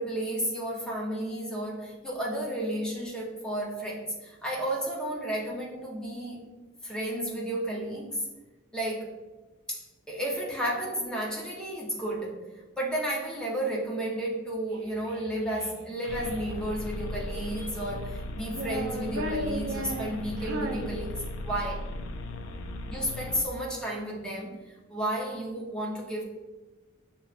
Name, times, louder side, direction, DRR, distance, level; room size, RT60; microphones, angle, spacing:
voice 1, 0.0-6.5 6.8-8.2 8.7-9.2 9.7-12.4 12.8-21.9 22.9-24.5 24.9-26.2, right 1 dB, 5° left, -4 dB, 0.6 m, -32 dB
Child speech kid speaking, 14.7-16.4 17.1-18.0 18.5-21.6, right 1 dB, 75° right, 0.5 m, -37 dB
sound 1, 16.1-23.4, left 2 dB, 60° left, 0.3 m, -37 dB
6.4 x 2.2 x 2.4 m, 1.2 s
head